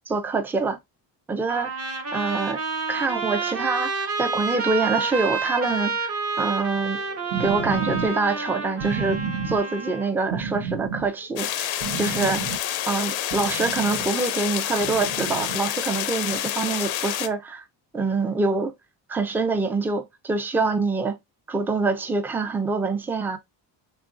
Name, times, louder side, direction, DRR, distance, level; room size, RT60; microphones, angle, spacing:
voice 1, 0.1-0.8 1.3-1.7 2.1-2.6 2.9-6.1 6.4-7.0 7.4-9.2 9.4-17.6 17.9-18.7 19.1-21.2 21.5-23.4, right 3 dB, 5° right, 0.3 m, -25 dB
Trumpet, 1.5-10.1, right 4 dB, 35° right, 0.7 m, -29 dB
sound 1, 6.8-14.1 14.7-15.6 16.3-16.4, right 6 dB, 70° right, 0.7 m, -32 dB
sound 2, 11.4-17.3, left 12 dB, 85° left, 0.5 m, -28 dB
2.9 x 2.5 x 2.4 m
cardioid pair, 85°, 44 cm